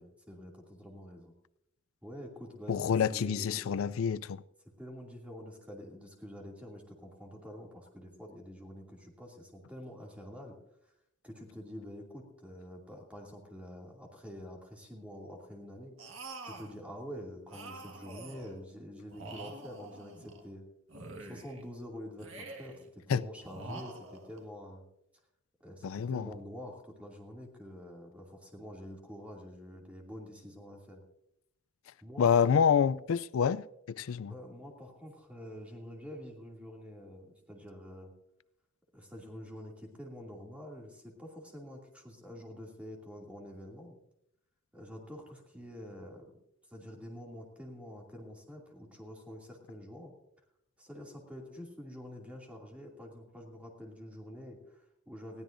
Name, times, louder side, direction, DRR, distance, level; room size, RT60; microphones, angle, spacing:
voice 1, 0.0-1.3 2.0-3.8 4.8-10.5 11.2-15.9 16.4-20.7 21.2-24.8 25.6-31.0 32.0-32.9 34.2-38.1 38.9-43.9 44.7-46.3 46.7-50.1 50.8-55.4, equal, 5° right, 2.5 m, -47 dB
voice 2, 2.7-4.4 23.1-23.2 25.8-26.3 32.2-34.3, left 7 dB, 80° left, 0.4 m, -27 dB
sound 1, 16.0-16.8 17.5-18.6 19.1-20.5 20.9-21.7 22.2-22.9 23.4-24.4, right 2 dB, 70° right, 1.8 m, -46 dB
20.5 x 15.0 x 2.6 m
head